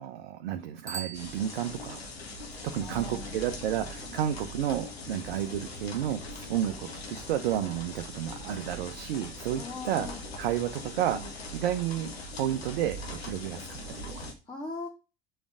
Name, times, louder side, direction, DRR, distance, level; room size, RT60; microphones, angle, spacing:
voice 1, 0.0-2.0 2.6-10.1 10.4-12.1 12.4-14.3, right 11 dB, 60° right, 6 dB, 0.9 m, -31 dB
Bicycle bell, 0.8-2.2, right 6 dB, 10° right, 1.1 m, -42 dB
sound 1, 1.1-14.3, left 1 dB, 75° left, 1.9 m, -41 dB
voice 2, 2.8-3.4 9.5-10.2 14.5-14.9, left 3 dB, 15° left, -1 dB, 1.8 m, -39 dB
7.3 x 4.5 x 5.0 m, 0.29 s
figure-of-eight pair, 70°, 31 cm